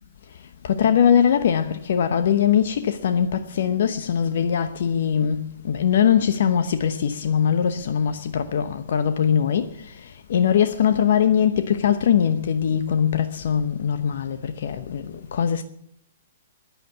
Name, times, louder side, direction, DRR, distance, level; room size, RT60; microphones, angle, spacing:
voice 1, 0.6-9.9 10.3-15.6, left 8 dB, 60° left, 0.9 m, -21 dB
14.5 x 10.5 x 7.1 m
figure-of-eight pair, 120°, 0 cm